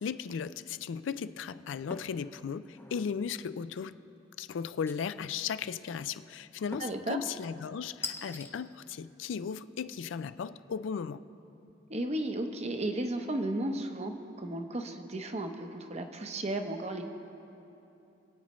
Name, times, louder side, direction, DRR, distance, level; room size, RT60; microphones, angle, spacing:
voice 1, 0.0-4.0 4.4-11.2, left 6 dB, 85° left, 14 dB, 0.4 m, -36 dB
sound 1, 1.9-2.2 2.7-3.1 4.9-5.4 6.7-7.1 8.0-8.5, left 3 dB, 10° left, 0.6 m, -41 dB
voice 2, 6.8-7.2 11.9-17.0, right 1 dB, 35° right, 5 dB, 0.8 m, -34 dB
26.0 x 8.6 x 3.1 m, 2.9 s
head